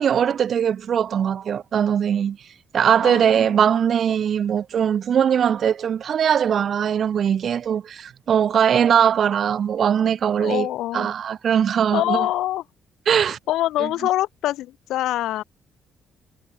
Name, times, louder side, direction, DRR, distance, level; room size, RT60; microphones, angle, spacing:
voice 1, 0.0-2.4 2.7-10.7 10.9-12.3 13.1-13.4 13.8-13.9, right 8 dB, 60° right, 0.4 m, -20 dB
voice 2, 3.0-3.6 10.4-11.1 11.9-12.6 13.5-15.4, left 14 dB, 85° left, 1.1 m, -25 dB
cardioid pair, 90°, 0 cm